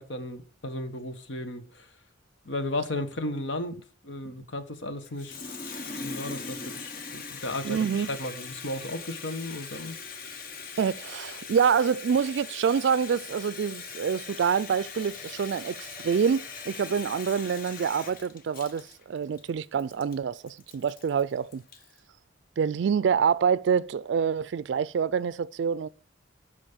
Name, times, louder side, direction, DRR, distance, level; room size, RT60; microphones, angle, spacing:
voice 1, 0.0-1.8 2.4-3.8 4.0-5.4 5.8-9.9, left 1 dB, 80° left, 1.3 m, -34 dB
Water tap faucet, 5.0-22.0, left 5 dB, 50° left, 1.1 m, -41 dB
voice 2, 7.6-8.1 10.8-21.6 22.6-25.9, right 6 dB, 70° right, 0.3 m, -26 dB
12.5 x 5.3 x 5.1 m
head